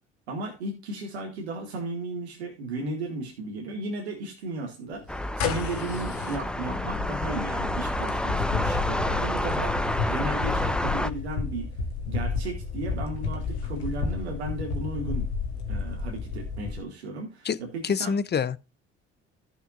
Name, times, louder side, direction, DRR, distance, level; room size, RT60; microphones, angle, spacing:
voice 1, 0.3-11.7 12.0-15.3 15.7-18.1, right 2 dB, 90° right, 2.2 m, -35 dB
sound 1, 5.1-16.8, left 4 dB, 85° left, 1.9 m, -31 dB
sound 2, 5.1-11.1, left 1 dB, 5° left, 0.9 m, -29 dB
voice 2, 17.8-18.6, left 6 dB, 30° left, 0.8 m, -26 dB
14.5 x 6.8 x 2.6 m
hypercardioid pair, 55°, 32 cm